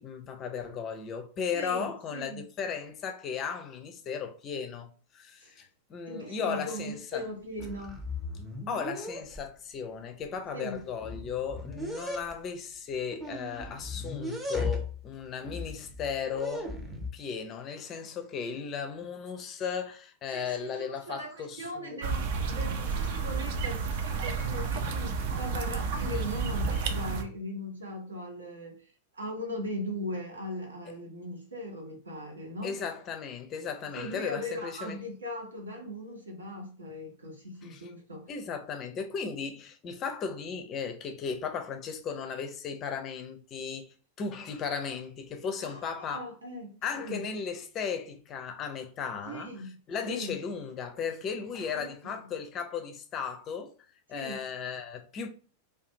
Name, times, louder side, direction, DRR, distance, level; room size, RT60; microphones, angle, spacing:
voice 1, 0.0-5.6 5.9-7.3 8.7-16.7 17.1-22.0 32.6-35.0 37.6-37.9 38.3-46.3 46.8-49.5 49.9-53.7 54.1-55.3, left 6 dB, 30° left, 0.4 m, -36 dB
voice 2, 1.5-2.4 5.4-5.5 6.1-8.0 10.5-10.8 20.3-32.7 33.9-38.3 45.6-47.3 49.3-49.7 50.1-50.3 51.7-52.2 54.1-54.4, equal, 75° right, 0.8 m, -39 dB
sound 1, 7.1-7.3 7.6-9.4 10.3-10.4 10.7-12.4 13.1-15.0 15.4-17.1, left 3 dB, 10° right, 0.6 m, -37 dB
sound 2, 22.0-27.2, right 5 dB, 50° right, 0.4 m, -31 dB
2.5 x 2.3 x 2.7 m
figure-of-eight pair, 90°, 0 cm